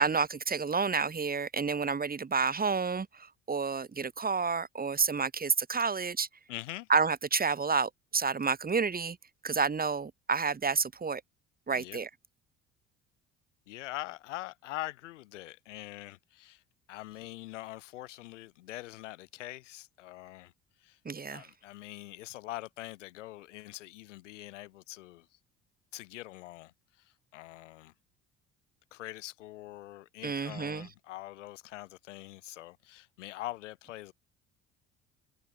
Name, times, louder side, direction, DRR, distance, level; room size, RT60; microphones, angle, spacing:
voice 1, 0.0-6.3 6.9-9.2 9.4-11.2 11.7-12.1 21.1-21.5 30.2-30.9, right 5 dB, 25° right, 2.3 m, -29 dB
voice 2, 6.5-6.9 11.7-12.0 13.7-16.6 16.9-20.5 20.8-21.0 21.3-25.3 25.9-27.9 28.9-34.1, left 17 dB, 75° left, 5.8 m, -43 dB
figure-of-eight pair, 60°, 37 cm